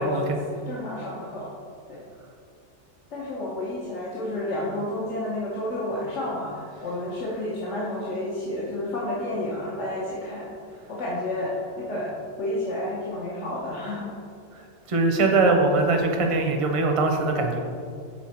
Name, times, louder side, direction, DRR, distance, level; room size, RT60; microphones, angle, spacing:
voice 1, 0.0-1.5 1.9-2.0 3.1-10.5 10.9-12.1 12.4-14.1, left 1 dB, 80° left, -7 dB, 1.3 m, -30 dB
voice 2, 14.9-17.6, right 3 dB, 35° right, 3 dB, 0.6 m, -22 dB
6.1 x 4.3 x 4.3 m, 2.3 s
omnidirectional pair, 1.2 m